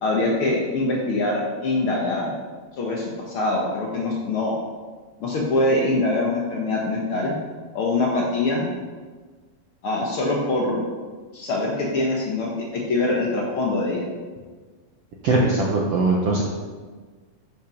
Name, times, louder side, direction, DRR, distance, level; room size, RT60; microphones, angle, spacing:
voice 1, 0.0-2.3 2.8-4.5 5.2-7.4 7.7-8.7 9.8-10.8 11.3-14.0, left 2 dB, 80° left, -3 dB, 1.2 m, -23 dB
voice 2, 15.2-16.4, right 2 dB, 75° right, -2 dB, 1.4 m, -20 dB
12.5 x 5.7 x 5.3 m, 1.4 s
omnidirectional pair, 4.4 m